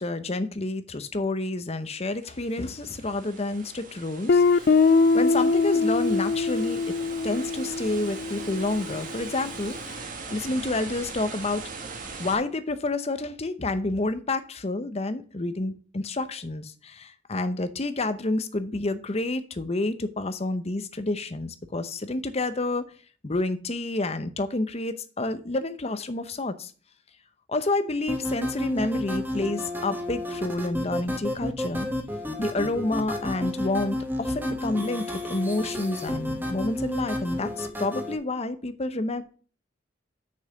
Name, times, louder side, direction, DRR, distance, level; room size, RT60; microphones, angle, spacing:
voice 1, 0.0-4.9 5.1-7.0 7.2-11.6 12.2-22.9 23.2-26.7 27.5-31.9 32.4-39.2, left 2 dB, 35° left, 11 dB, 0.8 m, -29 dB
sound 1, 2.1-12.4, right 4 dB, 45° right, 1.4 m, -40 dB
Guitar, 4.3-9.0, left 4 dB, 50° left, 0.4 m, -22 dB
sound 2, 28.1-38.2, left 1 dB, 10° right, 1.3 m, -31 dB
6.6 x 5.5 x 6.5 m, 0.39 s
head